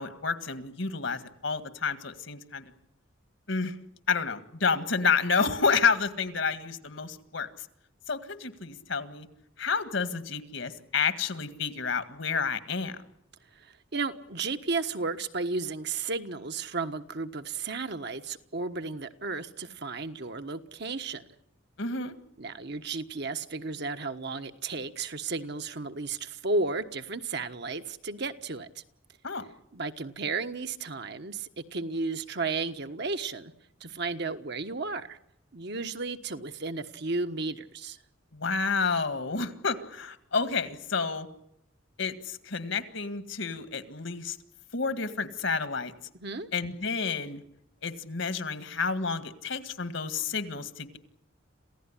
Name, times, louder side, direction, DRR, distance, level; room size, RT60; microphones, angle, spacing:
voice 1, 0.0-2.6 3.5-3.8 4.1-7.5 8.1-9.3 9.6-13.0 21.8-22.1 29.2-29.5 38.3-41.3 42.0-44.4 44.7-45.9 46.5-47.4 47.8-51.0, left 5 dB, 70° left, 1.9 m, -30 dB
voice 2, 13.5-21.2 22.4-28.7 29.7-33.5 33.8-35.2 35.5-38.0 46.2-46.5, right 3 dB, 55° right, 1.3 m, -33 dB
27.5 x 16.0 x 10.0 m
head